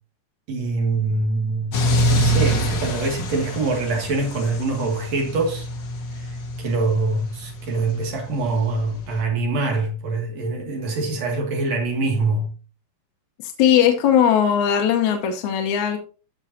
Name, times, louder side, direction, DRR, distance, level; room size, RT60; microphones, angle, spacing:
voice 1, 0.5-1.8 2.1-5.7 6.1-12.5, right 3 dB, 55° right, 3.1 m, -24 dB
sound 1, 1.7-9.2, right 1 dB, 50° left, 1.4 m, -26 dB
voice 2, 13.4-16.0, left 9 dB, 70° left, 2.2 m, -19 dB
14.5 x 5.6 x 2.7 m
omnidirectional pair, 3.8 m